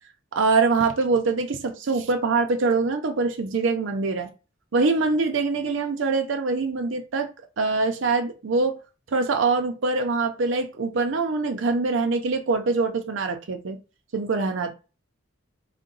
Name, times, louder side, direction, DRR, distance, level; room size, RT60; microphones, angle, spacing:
voice 1, 0.3-4.3 4.7-7.3 7.6-8.7 9.1-13.8 14.1-14.7, right 3 dB, 70° right, 0.5 m, -24 dB
3.7 x 2.2 x 3.8 m
head